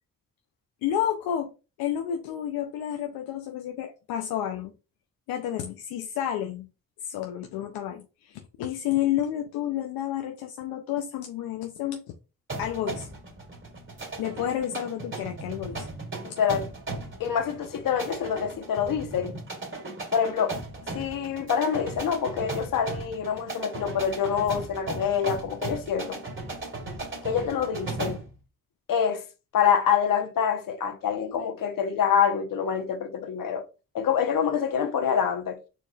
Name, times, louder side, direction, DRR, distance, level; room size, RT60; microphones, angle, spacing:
voice 1, 0.8-1.5 1.8-4.7 5.3-6.7 7.0-12.0 12.6-13.1 14.2-15.8, left 10 dB, 85° left, 0.6 m, -30 dB
sound 1, 12.5-28.3, right 2 dB, 35° right, 2.1 m, -37 dB
voice 2, 16.2-16.7 17.2-19.4 20.1-20.6 20.9-26.2 27.2-28.2 28.9-29.2 29.5-33.6 33.9-35.6, left 7 dB, 65° left, 1.0 m, -26 dB
4.6 x 4.2 x 2.4 m
supercardioid pair, 60°, 35 cm